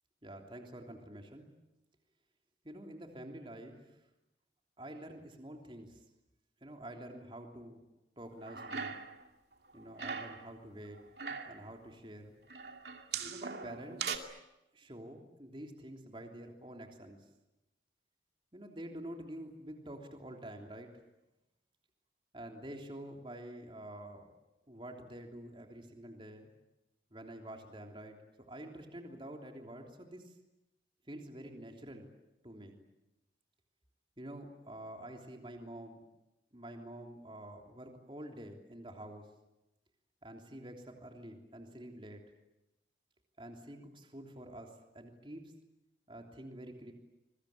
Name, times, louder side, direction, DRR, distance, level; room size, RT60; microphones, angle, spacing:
voice 1, 0.2-1.5 2.6-4.0 4.8-6.0 6.6-7.8 8.2-9.0 9.7-11.0 11.5-12.4 13.2-14.2 14.7-17.2 18.5-20.9 22.3-24.3 24.7-26.5 27.1-30.3 31.1-32.1 32.4-32.8 34.2-36.0 36.5-39.3 40.2-42.2 43.4-45.5 46.1-46.9, right 1 dB, 30° right, 3 dB, 3.3 m, -48 dB
sound 1, 8.4-9.3 9.5-10.5 11.0-11.6 12.5-14.2, right 6 dB, 65° right, 2.6 m, -40 dB
26.5 x 23.5 x 8.6 m, 0.95 s
head